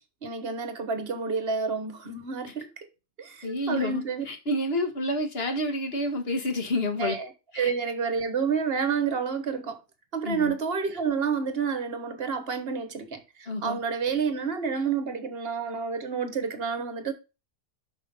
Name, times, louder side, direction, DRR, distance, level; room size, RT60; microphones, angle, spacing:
voice 1, 0.2-2.9 3.2-4.2 7.0-9.8 10.1-17.1, right 5 dB, 45° right, 1.4 m, -29 dB
voice 2, 3.4-7.1 7.5-7.7 10.2-10.5 13.5-13.8, left 1 dB, 45° left, 1.6 m, -29 dB
6.2 x 5.5 x 5.3 m
omnidirectional pair, 1.4 m